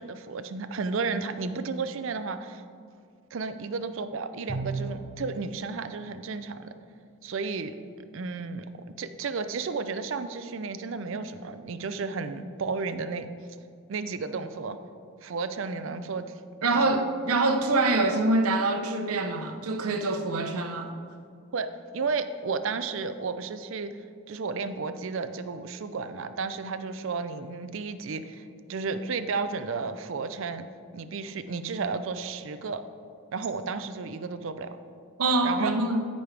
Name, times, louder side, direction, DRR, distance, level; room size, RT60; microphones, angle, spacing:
voice 1, 0.0-2.6 3.3-6.7 7.2-7.8 8.1-8.6 9.0-13.3 13.9-14.8 15.2-16.3 16.7-17.0 18.1-18.2 20.3-20.5 21.5-23.9 24.3-30.6 30.9-32.8 33.3-34.8 35.4-35.7, right 4 dB, 60° right, 10 dB, 0.4 m, -33 dB
Bowed string instrument, 4.5-5.4, right 3 dB, 35° right, 0.8 m, -33 dB
voice 2, 16.6-20.9 35.2-36.1, right 2 dB, 80° right, 5 dB, 0.8 m, -25 dB
13.5 x 5.3 x 3.3 m, 2.3 s
head